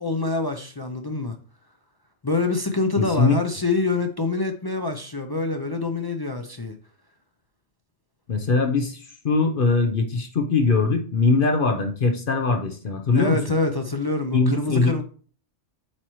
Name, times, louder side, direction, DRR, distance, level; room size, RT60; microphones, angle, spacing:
voice 1, 0.0-1.4 2.2-6.7 13.1-15.0, left 3 dB, 30° left, 0.4 m, -25 dB
voice 2, 3.0-3.4 8.3-13.4 14.3-15.0, left 4 dB, 50° left, 0.9 m, -21 dB
8.4 x 4.5 x 3.1 m
omnidirectional pair, 1.2 m